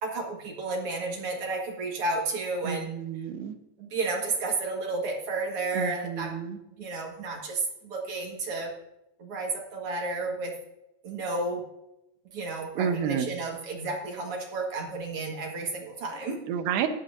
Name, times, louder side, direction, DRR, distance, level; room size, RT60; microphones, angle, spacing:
voice 1, 0.0-2.9 3.8-6.4 6.8-8.7 9.2-10.6 11.0-11.6 12.3-16.4, right 3 dB, 55° right, 0 dB, 1.7 m, -32 dB
voice 2, 2.6-3.6 5.7-6.6 12.8-13.3 16.5-16.9, right 8 dB, 75° right, 7 dB, 2.8 m, -30 dB
15.0 x 9.4 x 2.6 m, 0.87 s
omnidirectional pair, 4.7 m